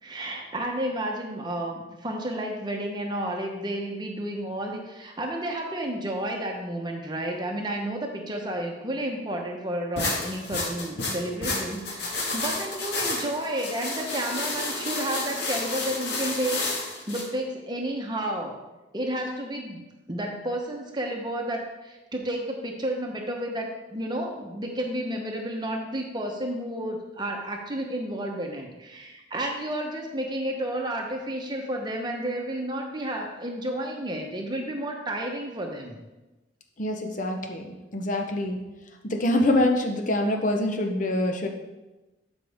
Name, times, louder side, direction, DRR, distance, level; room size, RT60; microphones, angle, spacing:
voice 1, 0.0-18.6 18.9-36.0, right 1 dB, 25° right, 1 dB, 1.1 m, -31 dB
sound 1, 10.0-17.2, left 2 dB, 60° left, 1.9 m, -30 dB
voice 2, 36.8-38.6 39.0-41.5, left 1 dB, 40° left, 3 dB, 0.9 m, -25 dB
12.0 x 5.4 x 3.6 m, 1.1 s
head